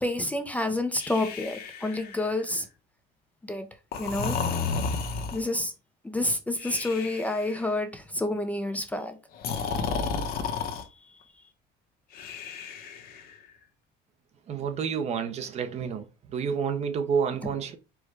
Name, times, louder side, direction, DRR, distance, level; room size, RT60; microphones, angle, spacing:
voice 1, 0.0-2.7 3.4-3.7 4.0-4.4 5.3-5.7 6.0-9.2 11.0-11.1, left 2 dB, 10° left, 0.4 m, -29 dB
Breathing, 0.9-2.5 3.9-5.6 6.6-7.6 9.4-10.8 12.1-13.3, left 5 dB, 50° left, 0.7 m, -32 dB
voice 2, 14.5-17.8, right 6 dB, 35° right, 0.6 m, -29 dB
4.6 x 2.2 x 4.6 m
cardioid pair, 160°, 19 cm